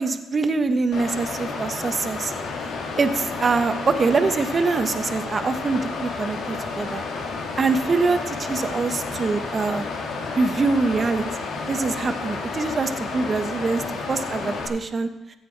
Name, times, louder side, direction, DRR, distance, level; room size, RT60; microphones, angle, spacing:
voice 1, 0.0-2.3 3.0-7.0 7.6-9.8 10.3-11.2 11.7-13.8 14.1-15.1, right 4 dB, 40° right, 9 dB, 1.0 m, -24 dB
Water, 0.9-14.7, left 4 dB, 85° left, 2.4 m, -31 dB
15.0 x 8.5 x 4.6 m, 0.99 s
cardioid pair, 90°, 0 cm